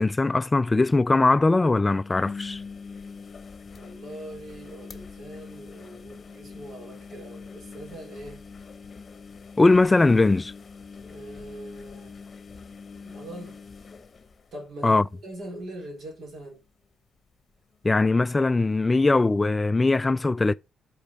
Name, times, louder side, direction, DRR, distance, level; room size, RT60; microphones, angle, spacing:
voice 1, 0.0-2.6 9.6-10.5 14.8-15.0 17.8-20.5, left 3 dB, 20° left, 0.3 m, -20 dB
sound 1, 0.6-0.7 0.9-1.0 1.9-15.0 15.4-15.8 16.1-16.2 18.0-18.1, left 5 dB, 35° left, 0.9 m, -43 dB
voice 2, 3.7-8.4 11.1-12.2 13.0-13.6 14.5-16.6, right 1 dB, 65° right, 3.5 m, -42 dB
6.1 x 5.0 x 4.4 m
cardioid pair, 90°, 0 cm